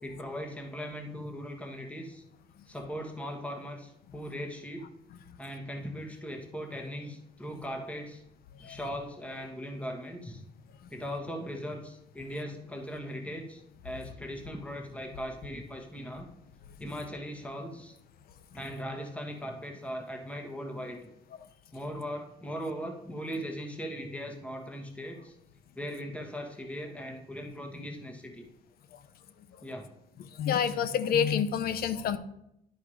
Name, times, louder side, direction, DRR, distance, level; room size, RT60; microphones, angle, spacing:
voice 1, 0.0-2.2 2.7-4.9 5.4-8.2 8.6-10.4 10.9-16.3 16.8-17.9 18.5-21.1 21.7-25.3 25.7-28.5 29.6-29.9, equal, 5° left, 3 dB, 1.3 m, -39 dB
voice 2, 30.4-32.2, left 8 dB, 65° left, 13 dB, 0.7 m, -27 dB
10.5 x 4.7 x 4.9 m, 0.79 s
cardioid pair, 110°, 17 cm